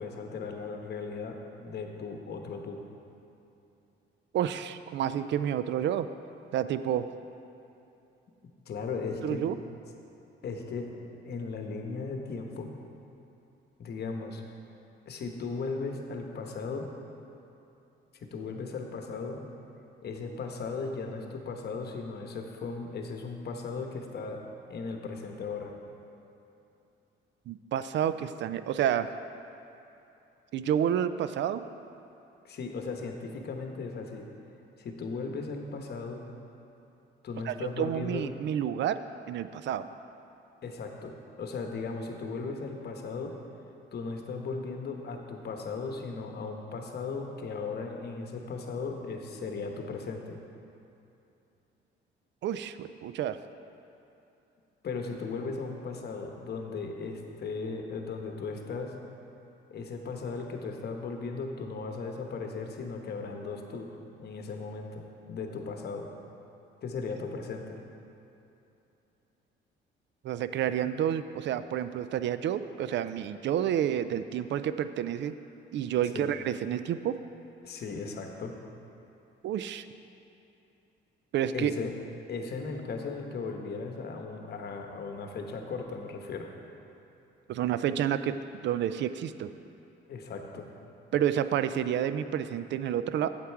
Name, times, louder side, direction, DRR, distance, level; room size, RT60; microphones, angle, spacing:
voice 1, 0.0-1.4 1.6-2.8 8.7-9.4 10.4-12.7 13.8-14.4 15.1-16.9 18.1-19.4 20.0-24.4 24.7-25.7 32.4-34.3 34.8-36.2 37.2-38.2 40.6-41.1 41.4-43.3 43.9-50.4 54.8-58.9 59.7-66.1 66.8-67.8 76.1-76.3 77.6-78.5 81.5-81.9 82.3-86.5 90.1-90.7, left 4 dB, 55° left, 3 dB, 1.1 m, -37 dB
voice 2, 4.3-6.1 6.5-7.1 9.2-9.6 27.5-29.1 30.5-31.6 37.4-39.0 39.3-39.9 52.4-53.4 70.2-75.3 75.7-77.2 79.4-79.9 81.3-81.7 87.5-88.4 88.6-89.5 91.1-93.3, right 10 dB, 65° right, 12 dB, 0.4 m, -29 dB
8.4 x 7.4 x 4.6 m, 2.9 s
cardioid pair, 90°, 20 cm